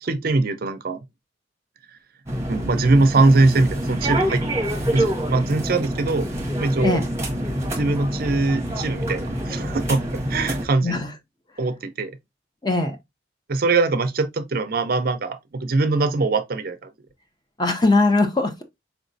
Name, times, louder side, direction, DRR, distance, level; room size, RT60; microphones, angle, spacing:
voice 1, 0.0-1.0 2.5-4.4 4.9-6.3 6.6-7.0 7.8-11.0 11.6-12.1 13.5-16.9, right 3 dB, 50° right, 0.5 m, -22 dB
sound 1, 2.3-10.7, right 1 dB, 15° right, 0.9 m, -26 dB
voice 2, 10.8-11.1 12.6-13.0 17.6-18.6, left 2 dB, 20° left, 0.7 m, -20 dB
4.4 x 3.0 x 2.6 m
head